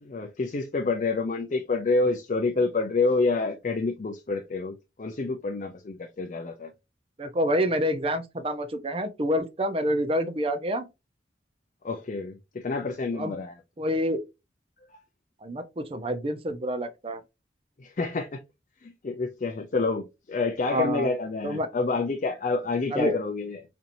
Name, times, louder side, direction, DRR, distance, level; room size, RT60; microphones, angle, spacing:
voice 1, 0.0-6.7 11.8-13.5 17.8-18.4 18.8-23.6, left 3 dB, 45° left, 0.4 m, -28 dB
voice 2, 7.2-10.9 13.1-13.4 13.8-14.2 15.4-17.2 20.6-21.1 21.4-21.7 22.9-23.1, equal, 30° right, 0.6 m, -27 dB
4.3 x 2.7 x 2.6 m
head